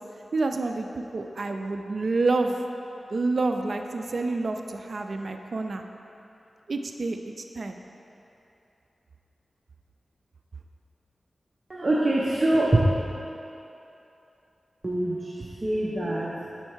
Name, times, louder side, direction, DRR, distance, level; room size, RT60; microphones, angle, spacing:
voice 1, 0.3-2.6 3.1-5.8 6.7-7.2 7.5-7.8, right 3 dB, 65° right, 5 dB, 0.3 m, -28 dB
voice 2, 11.7-12.8 14.8-15.3 15.6-16.3, right 1 dB, 40° right, -4 dB, 0.7 m, -24 dB
6.4 x 4.3 x 4.5 m, 2.8 s
wide cardioid pair, 65°, 0 cm